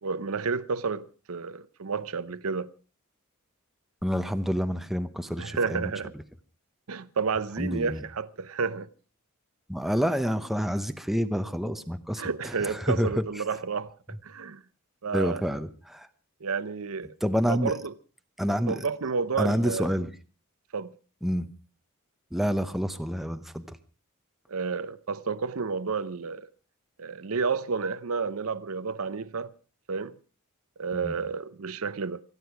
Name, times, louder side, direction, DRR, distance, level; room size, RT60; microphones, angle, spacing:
voice 1, 0.0-2.7 5.4-6.1 6.9-8.9 12.2-13.9 14.2-14.6 15.0-15.4 16.4-17.1 17.5-17.9 18.7-19.9 20.7-21.0 24.5-26.5 27.0-29.5 29.9-30.1 30.8-32.2, right 5 dB, 70° right, 0.7 m, -31 dB
voice 2, 4.0-5.9 7.6-8.0 9.7-13.1 13.4-13.5 15.1-16.1 17.2-17.7 18.4-18.8 19.4-20.1 21.2-21.5 22.3-23.8 31.0-31.2, equal, ahead, 0.8 m, -28 dB
27.0 x 10.0 x 4.7 m
head